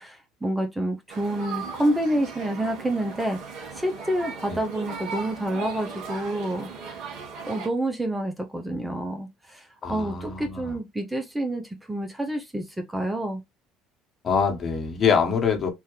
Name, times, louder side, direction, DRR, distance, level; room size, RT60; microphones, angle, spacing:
voice 1, 0.0-7.1 7.5-13.4, right 1 dB, 10° right, 0.8 m, -28 dB
sound 1, 1.1-7.7, right 5 dB, 75° right, 1.7 m, -37 dB
voice 2, 9.8-10.8 14.2-15.7, left 6 dB, 40° left, 1.4 m, -24 dB
3.6 x 2.7 x 3.3 m
supercardioid pair, 85°, 0 cm